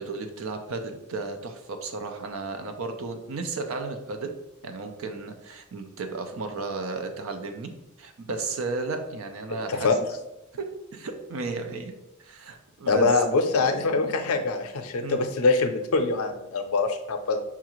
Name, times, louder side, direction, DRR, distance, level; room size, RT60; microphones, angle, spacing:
voice 1, 0.0-4.3 4.6-7.7 8.0-9.9 10.5-11.9 12.2-13.1 14.0-14.1 15.0-15.2, right 3 dB, 70° right, 6 dB, 0.5 m, -34 dB
voice 2, 12.9-17.4, left 3 dB, 85° left, 6 dB, 0.5 m, -24 dB
5.6 x 2.4 x 3.0 m, 0.90 s
head